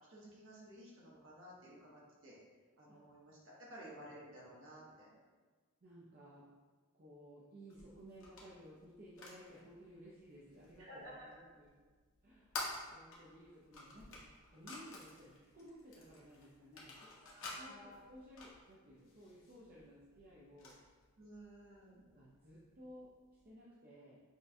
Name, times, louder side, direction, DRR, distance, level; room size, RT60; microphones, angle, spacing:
voice 1, 0.1-2.3 2.8-5.2 10.8-11.3 17.2-18.0 21.2-22.0, equal, 60° right, -6 dB, 1.1 m, -54 dB
voice 2, 5.8-6.5 6.9-11.7 12.2-12.5 12.9-20.8 22.1-24.2, equal, 40° right, -7 dB, 0.5 m, -57 dB
sound 1, 7.7-23.5, left 2 dB, 65° left, 0.8 m, -52 dB
6.2 x 2.2 x 2.6 m, 1.4 s
head